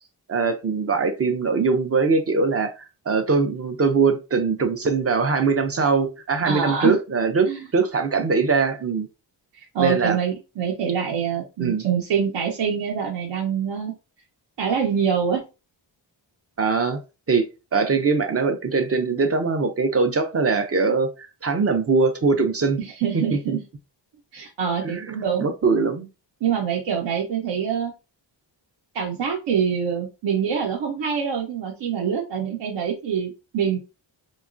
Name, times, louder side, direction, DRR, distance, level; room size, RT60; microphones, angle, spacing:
voice 1, 0.3-9.1 9.8-10.2 11.6-11.9 16.6-17.0 17.3-22.8 23.5-23.6 24.8-26.1, right 4 dB, 35° right, 0.4 m, -22 dB
voice 2, 6.4-7.0 7.5-7.6 9.5-13.9 14.6-15.4 22.8-23.6 24.3-25.5 26.4-27.9 28.9-33.8, right 7 dB, 70° right, 0.7 m, -25 dB
2.9 x 2.3 x 2.5 m
wide cardioid pair, 130°, 46 cm